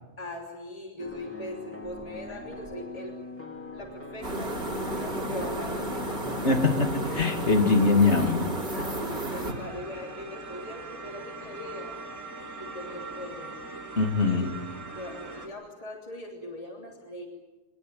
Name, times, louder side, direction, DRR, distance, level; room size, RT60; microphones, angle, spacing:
voice 1, 0.2-3.2 3.7-6.0 8.7-11.9 12.6-13.5 14.2-14.5 14.9-17.3, left 1 dB, 25° left, 0 dB, 3.2 m, -40 dB
sound 1, 1.0-8.7, left 2 dB, 10° left, 3.6 m, -42 dB
sound 2, 4.2-9.5, right 1 dB, 45° right, 3.3 m, -32 dB
voice 2, 6.4-8.5 14.0-14.6, left 3 dB, 50° left, 5 dB, 2.6 m, -23 dB
sound 3, 9.5-15.5, right 3 dB, 60° right, 4.3 m, -41 dB
24.5 x 20.5 x 9.3 m, 1.2 s
omnidirectional pair, 1.5 m